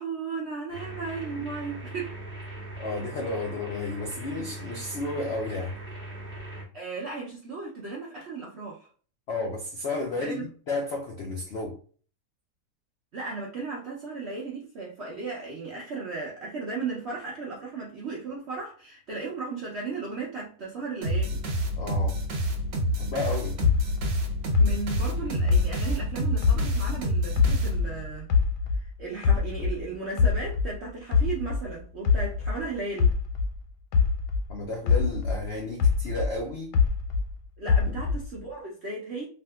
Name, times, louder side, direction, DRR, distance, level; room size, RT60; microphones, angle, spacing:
voice 1, 0.0-2.2 6.7-8.9 10.2-10.5 13.1-21.4 24.6-28.3 28.7-33.1 37.6-39.3, right 4 dB, 65° right, 0.6 m, -35 dB
sound 1, 0.7-6.6, right 1 dB, 10° right, 0.5 m, -40 dB
voice 2, 2.8-5.8 9.3-11.8 21.8-22.2 23.0-23.6 34.5-36.7 37.8-38.0, left 2 dB, 90° left, 0.5 m, -32 dB
sound 2, 21.0-28.2, right 1 dB, 80° right, 1.4 m, -28 dB
sound 3, 23.6-27.0 27.4-29.8 30.2-34.5 34.9-37.3 37.7-38.4, left 5 dB, 70° left, 1.1 m, -24 dB
3.5 x 2.5 x 2.3 m
omnidirectional pair, 2.0 m